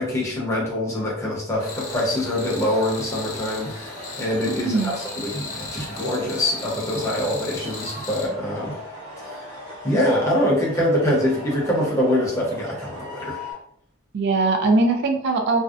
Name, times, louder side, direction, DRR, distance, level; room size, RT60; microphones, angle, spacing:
voice 1, 0.0-8.8 9.2-9.4 9.8-13.4, left 1 dB, 15° left, -5 dB, 0.7 m, -24 dB
sound 1, 1.5-13.5, equal, 90° right, 1.1 m, -39 dB
sound 2, 1.6-8.3, left 4 dB, 90° left, 0.6 m, -37 dB
voice 2, 4.4-4.9 14.1-15.6, right 3 dB, 55° right, 4 dB, 0.3 m, -21 dB
2.6 x 2.0 x 2.4 m, 0.71 s
head